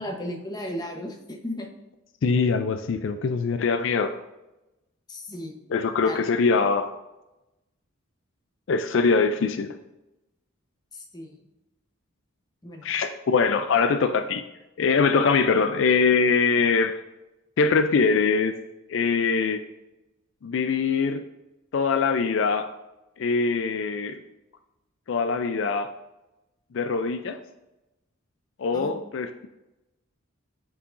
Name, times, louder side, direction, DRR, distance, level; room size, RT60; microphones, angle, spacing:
voice 1, 0.0-1.7 5.1-5.5 6.0-6.3 10.9-11.4 12.6-12.9 28.7-28.9, left 1 dB, 20° left, 2 dB, 0.9 m, -35 dB
voice 2, 2.2-4.1 5.7-6.9 8.7-9.7 12.8-14.4 14.8-17.0 17.6-18.5 18.9-19.6 20.4-21.2 21.7-22.7 23.2-24.2 25.1-25.9 26.7-27.4 28.6-29.5, left 5 dB, 65° left, 8 dB, 0.4 m, -23 dB
8.2 x 4.8 x 2.5 m, 0.97 s
head